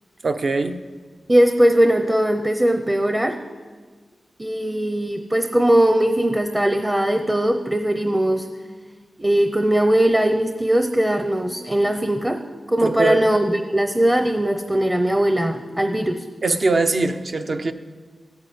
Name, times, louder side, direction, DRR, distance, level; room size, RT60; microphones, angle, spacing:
voice 1, 0.2-0.8 12.8-13.2 16.4-17.7, right 3 dB, 45° right, 8 dB, 0.9 m, -21 dB
voice 2, 1.3-3.4 4.4-8.5 9.2-12.4 12.7-16.2, right 1 dB, 10° right, 7 dB, 0.8 m, -19 dB
14.5 x 9.6 x 9.4 m, 1.5 s
wide cardioid pair, 105°, 0 cm